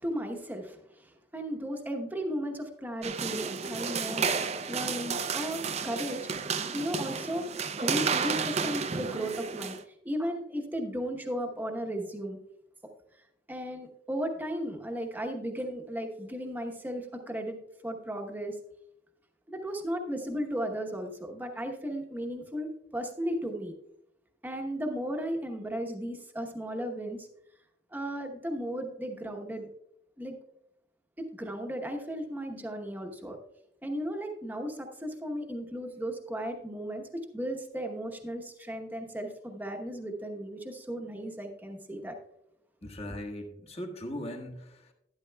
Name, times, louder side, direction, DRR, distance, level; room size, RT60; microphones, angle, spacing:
voice 1, 0.0-6.3 6.7-7.4 7.8-12.4 13.5-17.6 17.8-18.6 19.5-23.7 24.4-27.3 27.9-29.7 30.2-30.4 31.2-33.4 33.8-42.2, equal, 10° right, 3 dB, 1.0 m, -35 dB
sound 1, 3.0-9.8, right 5 dB, 35° right, 0.5 m, -32 dB
voice 2, 42.8-44.9, left 1 dB, 35° left, 2 dB, 1.4 m, -39 dB
12.0 x 10.5 x 2.2 m, 0.80 s
head